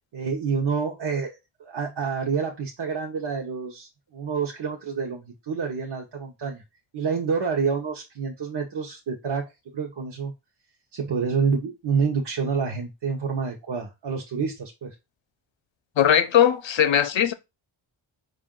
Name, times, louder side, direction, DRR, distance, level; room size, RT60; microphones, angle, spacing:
voice 1, 0.1-6.6 6.9-10.3 10.9-14.9, right 5 dB, 55° right, 0.9 m, -28 dB
voice 2, 16.0-17.3, left 9 dB, 70° left, 0.7 m, -19 dB
5.2 x 2.5 x 3.7 m
wide cardioid pair, 150°, 48 cm